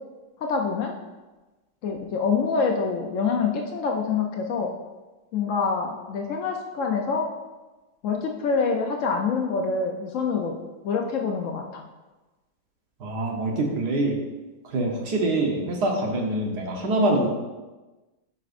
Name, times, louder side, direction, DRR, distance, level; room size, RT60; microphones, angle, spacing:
voice 1, 0.4-0.9 1.8-4.7 5.3-7.3 8.0-10.6 10.8-11.8, left 5 dB, 90° left, 2 dB, 0.6 m, -26 dB
voice 2, 13.0-14.2 14.6-17.3, right 2 dB, 60° right, 0 dB, 1.5 m, -25 dB
9.8 x 5.4 x 2.5 m, 1.2 s
omnidirectional pair, 2.1 m